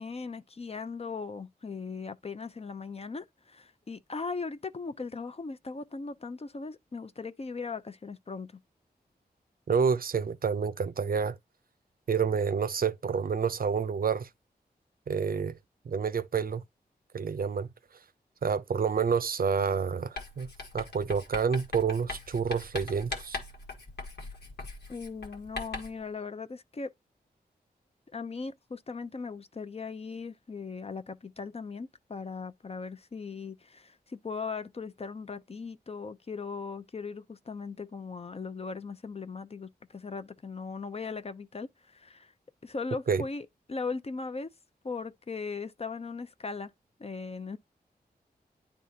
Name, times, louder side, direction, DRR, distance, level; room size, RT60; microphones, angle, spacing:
voice 1, 0.0-8.5 24.9-26.9 28.1-42.3 42.6-44.5 44.8-46.7 47.0-47.6, left 4 dB, 35° left, 0.6 m, -38 dB
voice 2, 9.7-11.4 12.1-14.3 15.1-15.6 15.9-16.6 17.1-17.7 18.4-20.5 20.7-23.4 43.1-43.2, right 6 dB, 60° right, 0.6 m, -28 dB
Writing, 20.2-26.0, left 3 dB, 85° left, 1.5 m, -41 dB
10.0 x 3.6 x 2.8 m
wide cardioid pair, 75°, 17 cm